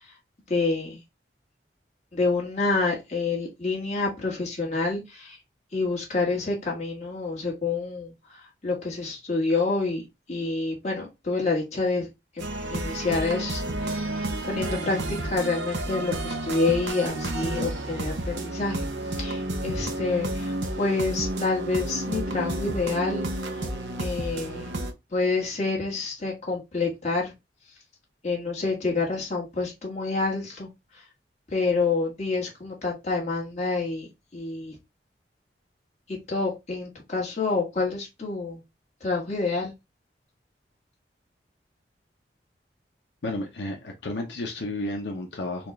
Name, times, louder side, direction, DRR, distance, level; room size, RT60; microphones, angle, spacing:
voice 1, 0.5-1.0 2.1-5.4 5.7-12.1 12.3-23.6 24.0-24.7 25.1-27.3 28.2-31.0 31.5-34.8 36.1-38.6 39.0-39.7, left 3 dB, 40° left, 1.6 m, -28 dB
sound 1, 12.4-24.9, right 1 dB, 85° right, 0.7 m, -31 dB
voice 2, 43.2-45.7, left 1 dB, 80° left, 0.7 m, -32 dB
4.2 x 2.4 x 3.1 m
head